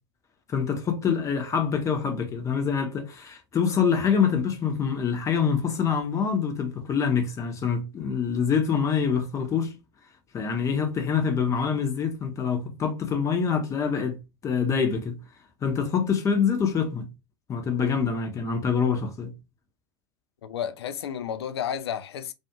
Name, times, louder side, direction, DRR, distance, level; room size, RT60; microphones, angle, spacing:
voice 1, 0.5-9.7 10.3-15.2 15.6-17.1 17.5-19.3, left 6 dB, 20° left, 0.7 m, -25 dB
voice 2, 20.4-22.3, left 8 dB, 60° left, 0.4 m, -32 dB
2.4 x 2.3 x 2.8 m
figure-of-eight pair, 90°, 15 cm